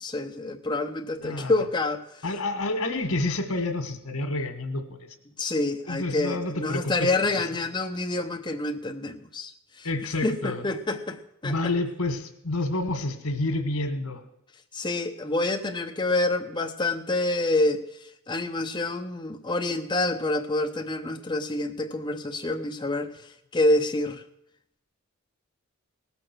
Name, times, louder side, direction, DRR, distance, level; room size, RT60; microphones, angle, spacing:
voice 1, 0.0-2.0 5.4-9.5 9.8-9.9 10.2-11.7 14.7-23.1 23.5-24.2, left 2 dB, 20° left, 3 dB, 0.7 m, -27 dB
voice 2, 1.2-1.5 2.2-5.1 5.9-7.3 9.8-10.6 11.4-14.2, left 2 dB, 90° left, 7 dB, 1.8 m, -29 dB
18.5 x 6.9 x 6.1 m, 0.81 s
head